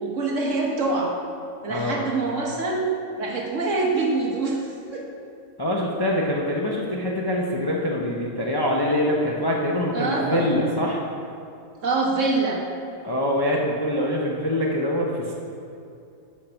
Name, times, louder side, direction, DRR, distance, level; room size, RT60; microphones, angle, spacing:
voice 1, 0.0-1.2 1.6-2.9 3.2-5.0 9.9-10.5 11.8-12.6, right 3 dB, 60° right, -1 dB, 1.5 m, -25 dB
voice 2, 1.7-2.0 5.6-11.0 13.0-15.3, left 1 dB, 25° left, -2 dB, 0.6 m, -24 dB
7.5 x 5.5 x 6.9 m, 2.6 s
omnidirectional pair, 1.5 m